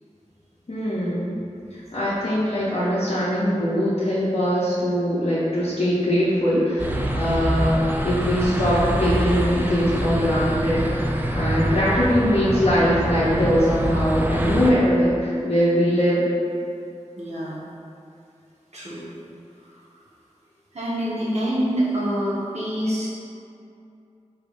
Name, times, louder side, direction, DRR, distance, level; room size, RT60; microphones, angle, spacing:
voice 1, 0.7-1.4 1.7-16.2, equal, 55° left, -10 dB, 0.7 m, -22 dB
sound 1, 6.8-14.7, equal, 15° right, 0.4 m, -25 dB
voice 2, 10.8-11.5 17.2-17.6 18.7-19.1 19.6-19.8 20.7-23.1, equal, 60° right, -9 dB, 1.1 m, -27 dB
4.3 x 3.5 x 2.5 m, 2.5 s
wide cardioid pair, 50°, 12 cm